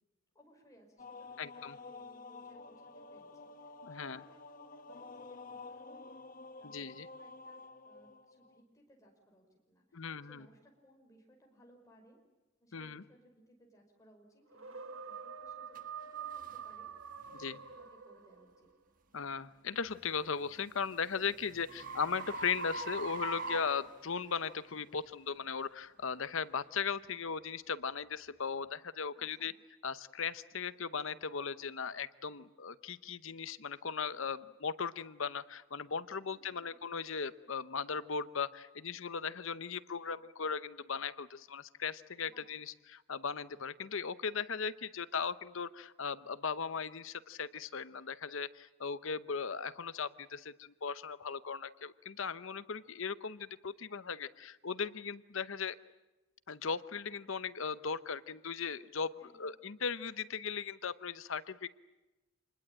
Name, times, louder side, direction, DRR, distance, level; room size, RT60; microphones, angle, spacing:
voice 1, 0.3-6.1 6.6-7.6 7.8-12.2 12.6-15.8 16.1-17.8 18.0-18.7 29.2-29.5 36.2-36.8 42.2-42.4 59.2-59.4, equal, 15° left, 1 dB, 5.5 m, -64 dB
Men Choir, 1.0-8.6, left 3 dB, 40° left, 0.9 m, -50 dB
voice 2, 1.4-1.8 3.8-4.2 6.6-7.1 9.9-10.4 12.7-13.0 17.4-17.6 19.1-29.5 29.8-55.8 56.5-61.7, left 6 dB, 65° left, 14 dB, 0.8 m, -38 dB
sound 1, 14.5-18.6, right 7 dB, 75° right, 1.2 m, -46 dB
sound 2, 15.8-15.9 16.4-16.6 17.2-17.4 20.1-24.6, right 2 dB, 40° right, 1.3 m, -42 dB
26.5 x 21.0 x 8.8 m, 1.1 s
head